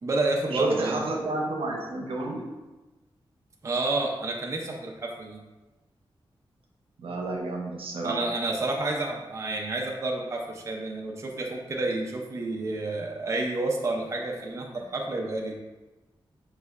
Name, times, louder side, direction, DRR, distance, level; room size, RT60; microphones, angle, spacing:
voice 1, 0.0-1.0 3.6-5.4 8.0-15.6, right 2 dB, 30° right, 0 dB, 0.5 m, -30 dB
voice 2, 0.5-2.5 7.0-8.3, right 2 dB, 85° right, 1 dB, 0.7 m, -30 dB
5.1 x 3.1 x 2.4 m, 1.1 s
wide cardioid pair, 145°, 9 cm